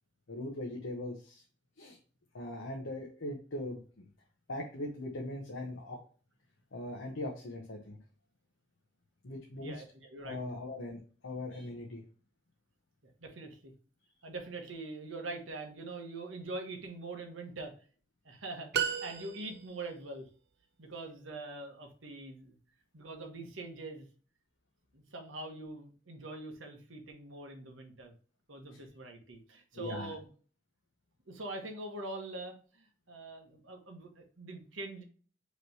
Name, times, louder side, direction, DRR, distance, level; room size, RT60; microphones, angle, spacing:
voice 1, 0.3-1.4 1.8-2.0 2.3-4.1 4.5-6.0 6.7-8.0 9.2-9.8 10.2-12.0 29.7-30.1, left 1 dB, 80° left, 0 dB, 0.9 m, -40 dB
voice 2, 9.6-10.4 13.0-13.7 14.2-17.7 18.2-20.3 20.8-22.5 22.9-24.1 24.9-28.1 28.5-30.3 31.3-35.0, right 2 dB, 80° right, 3 dB, 1.2 m, -43 dB
sound 1, 18.7-19.9, right 7 dB, 55° right, 0.4 m, -34 dB
5.0 x 3.1 x 2.7 m, 0.40 s
head